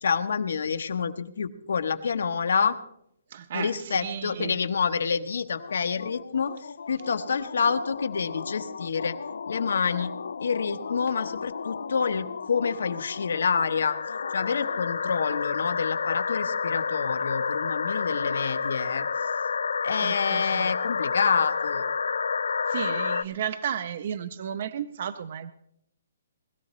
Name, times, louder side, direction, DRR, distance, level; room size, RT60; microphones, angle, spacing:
voice 1, 0.0-2.8 3.5-9.2 9.5-10.1 10.4-14.0 14.3-19.1 19.8-21.9, left 6 dB, 70° left, 10 dB, 1.0 m, -27 dB
voice 2, 3.3-4.6 20.0-20.7 22.7-25.5, right 9 dB, 35° right, 12 dB, 0.4 m, -33 dB
sound 1, 5.6-23.2, left 5 dB, 85° left, 0.4 m, -31 dB
20.0 x 14.0 x 3.1 m, 0.74 s
hypercardioid pair, 180°, 0 cm